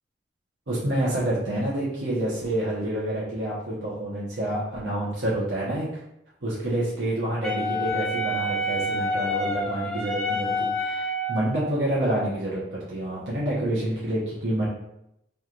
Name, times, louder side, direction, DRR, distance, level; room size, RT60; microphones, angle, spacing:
voice 1, 0.7-5.9 6.4-14.7, right 1 dB, 75° right, -7 dB, 1.0 m, -28 dB
Wind instrument woodwind instrument, 7.4-11.6, left 1 dB, 5° left, 0.4 m, -28 dB
3.3 x 2.5 x 4.4 m, 0.82 s
head